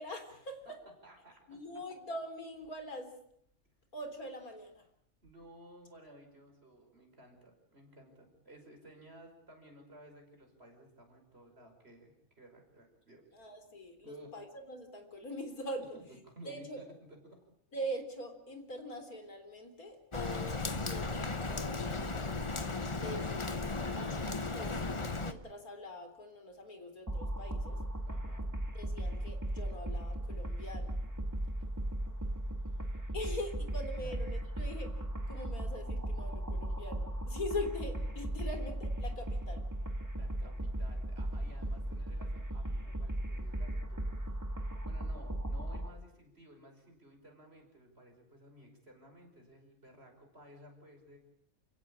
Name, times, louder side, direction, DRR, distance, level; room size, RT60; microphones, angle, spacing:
voice 1, 0.0-0.6 1.5-3.1 3.9-4.8 13.3-16.0 16.5-16.8 17.7-23.4 23.9-24.8 25.2-27.8 28.7-31.0 33.1-39.6, left 1 dB, 85° left, 6 dB, 4.1 m, -43 dB
voice 2, 0.7-1.6 5.2-12.1 12.4-13.2 14.0-14.3 15.9-17.4 28.0-28.5 34.0-34.2 40.1-44.0 44.8-51.2, equal, 45° right, 3 dB, 5.8 m, -56 dB
Rain, 20.1-25.3, left 3 dB, 25° left, 1.1 m, -36 dB
sound 1, 27.1-45.9, right 1 dB, 10° right, 2.2 m, -37 dB
28.5 x 16.5 x 8.7 m, 0.74 s
omnidirectional pair, 1.5 m